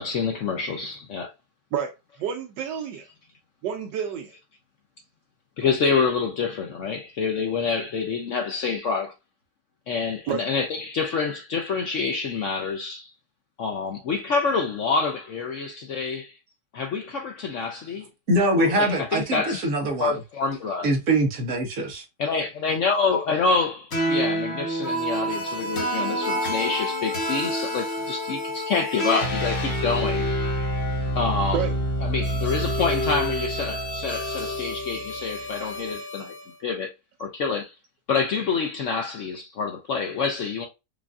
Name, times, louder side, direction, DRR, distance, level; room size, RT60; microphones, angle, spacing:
voice 1, 0.0-1.3 5.6-9.1 9.9-13.1 13.6-16.4 16.7-18.1 18.3-19.7 20.0-20.9 22.2-30.3 31.1-31.6 32.0-36.3 36.6-36.9 37.2-37.7 38.1-40.6, left 4 dB, 70° left, 0.7 m, -27 dB
voice 2, 2.2-3.0 3.6-4.3 10.3-10.4 31.5-31.7, right 8 dB, 80° right, 1.3 m, -29 dB
voice 3, 18.3-20.1 20.8-22.0, right 1 dB, 55° right, 1.3 m, -23 dB
sound 1, 23.9-36.4, equal, 45° left, 1.1 m, -27 dB
4.9 x 2.5 x 2.3 m
omnidirectional pair, 1.9 m